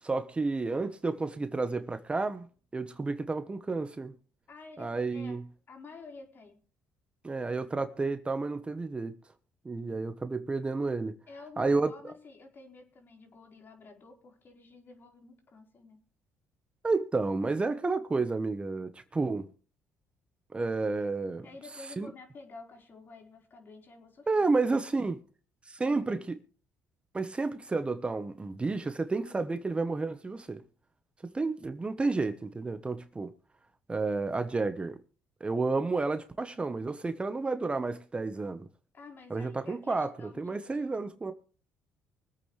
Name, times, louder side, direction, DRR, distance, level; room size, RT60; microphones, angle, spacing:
voice 1, 0.0-2.5 2.7-4.1 4.8-5.4 7.2-9.2 9.6-11.2 11.6-12.1 16.8-19.5 20.5-21.4 22.0-22.1 24.3-25.2 25.7-26.4 27.1-30.6 31.3-33.3 33.9-35.0 35.4-38.7 39.3-40.1 40.4-41.3, right 3 dB, 20° right, 1.1 m, -31 dB
voice 2, 4.5-5.4 5.7-6.6 11.3-16.0 21.4-24.3 38.9-41.0, left 3 dB, 45° left, 4.5 m, -50 dB
24.0 x 8.5 x 3.3 m
supercardioid pair, 85°, 5 cm